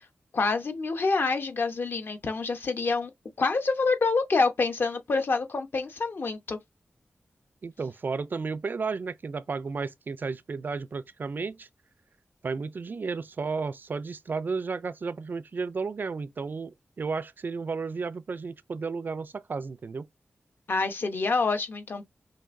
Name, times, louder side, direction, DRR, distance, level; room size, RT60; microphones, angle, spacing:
voice 1, 0.3-3.1 3.4-6.6 20.7-22.1, left 4 dB, 55° left, 0.9 m, -27 dB
voice 2, 7.6-11.7 12.4-20.1, right 4 dB, 50° right, 0.3 m, -33 dB
5.7 x 2.6 x 2.6 m
wide cardioid pair, 100°, 4 cm